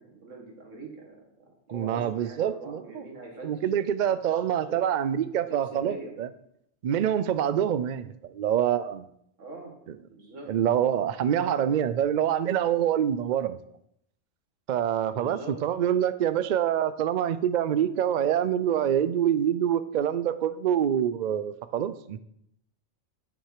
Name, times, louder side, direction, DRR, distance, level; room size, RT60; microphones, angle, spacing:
voice 1, 0.0-4.4 4.7-4.8 5.5-6.1 9.4-9.7 10.1-10.5 15.2-15.6, right 2 dB, 65° right, 1 dB, 2.2 m, -44 dB
voice 2, 1.7-3.0 3.4-6.3 6.8-9.1 10.5-13.6 14.7-22.2, right 9 dB, 80° right, 13 dB, 0.4 m, -26 dB
8.9 x 6.2 x 4.9 m, 0.73 s
omnidirectional pair, 1.4 m